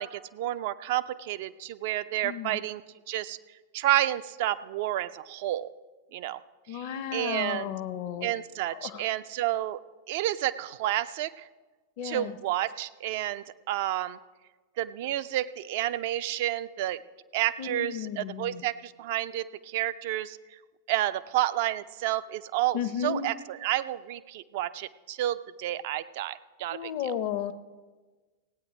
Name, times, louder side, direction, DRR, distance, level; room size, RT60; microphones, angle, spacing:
voice 1, 0.0-2.8 3.1-3.4 3.7-5.7 6.1-6.4 6.7-6.8 7.1-7.7 8.2-9.8 10.1-11.5 12.0-14.2 14.8-17.0 17.3-20.4 20.9-27.1, right 14 dB, 50° right, 14 dB, 0.4 m, -30 dB
voice 2, 2.2-2.6 6.7-8.3 8.7-9.0 12.0-12.4 17.6-18.6 22.7-23.3 26.7-27.5, left 9 dB, 45° left, 9 dB, 0.6 m, -33 dB
16.5 x 9.0 x 5.0 m, 1.3 s
figure-of-eight pair, 90°, 0 cm